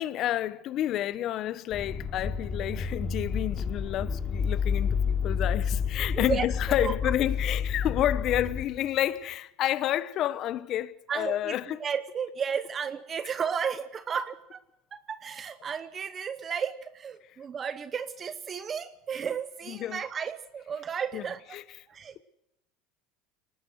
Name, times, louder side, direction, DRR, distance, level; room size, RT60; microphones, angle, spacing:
voice 1, 0.0-11.8 19.7-20.0 21.1-21.3 21.5-21.6, left 12 dB, 50° left, 1.1 m, -30 dB
sound 1, 1.7-8.9, left 6 dB, 30° left, 3.1 m, -30 dB
voice 2, 6.1-6.5 6.8-7.1 11.1-14.6 14.9-21.4 21.9-22.2, right 7 dB, 30° right, 0.9 m, -33 dB
23.0 x 19.5 x 6.4 m
supercardioid pair, 105°, 0 cm